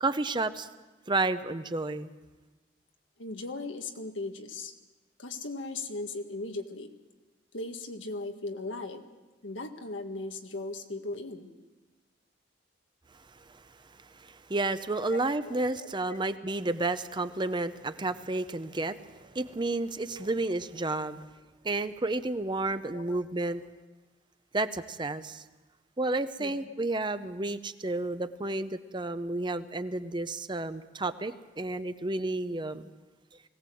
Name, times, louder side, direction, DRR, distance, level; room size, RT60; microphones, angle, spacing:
voice 1, 0.0-0.7 1.1-2.1 14.1-21.2 21.6-23.6 24.5-25.4 26.0-32.9, right 2 dB, 25° right, 11 dB, 0.7 m, -31 dB
voice 2, 3.2-4.7 5.2-6.9 7.5-9.0 9.4-11.5 15.1-15.2 15.4-16.2 20.1-20.3 22.7-23.2 23.6-23.7 26.4-26.7, left 2 dB, 90° left, 5 dB, 1.7 m, -38 dB
20.5 x 17.0 x 7.7 m, 1.2 s
head